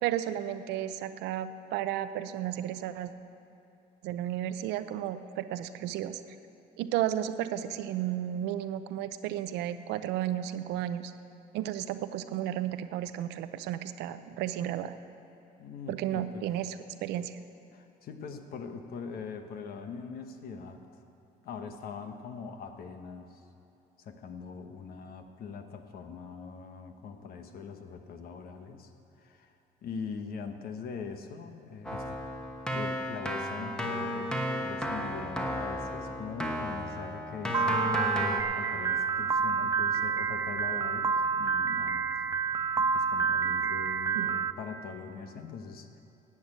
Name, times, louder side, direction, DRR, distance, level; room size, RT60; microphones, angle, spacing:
voice 1, 0.0-3.1 4.0-6.2 6.8-11.1 11.5-15.0 15.9-17.4 44.2-44.3, right 11 dB, 90° right, 11 dB, 0.6 m, -33 dB
voice 2, 15.6-16.4 17.7-20.8 21.4-23.4 24.0-28.9 29.2-29.5 29.8-32.2 32.7-42.1 42.4-46.0, left 5 dB, 65° left, 6 dB, 1.2 m, -42 dB
Keyboard (musical), 31.8-38.4, equal, 5° left, 1.2 m, -33 dB
Piano, 37.5-44.5, right 6 dB, 20° right, 0.4 m, -28 dB
11.0 x 8.6 x 8.7 m, 2.8 s
cardioid pair, 110°, 17 cm